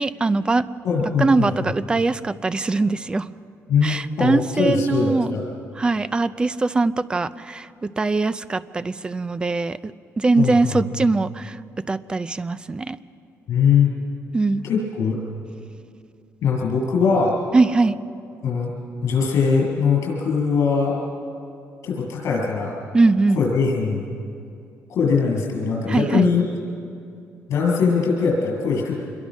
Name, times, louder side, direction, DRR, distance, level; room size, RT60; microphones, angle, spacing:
voice 1, 0.0-0.7 1.2-3.3 3.8-5.4 5.8-9.8 10.2-11.6 11.9-13.0 14.3-14.7 17.5-18.0 22.9-23.4 25.9-26.3, right 3 dB, 15° right, 14 dB, 0.5 m, -21 dB
voice 2, 0.8-1.7 3.7-5.4 10.4-10.8 13.5-13.9 14.6-15.2 16.4-17.3 18.4-18.7 19.0-21.0 21.8-22.8 23.3-24.0 24.9-26.4 27.5-29.0, left 5 dB, 65° left, -2 dB, 6.8 m, -21 dB
26.5 x 22.0 x 6.3 m, 2.5 s
cardioid pair, 170°, 6 cm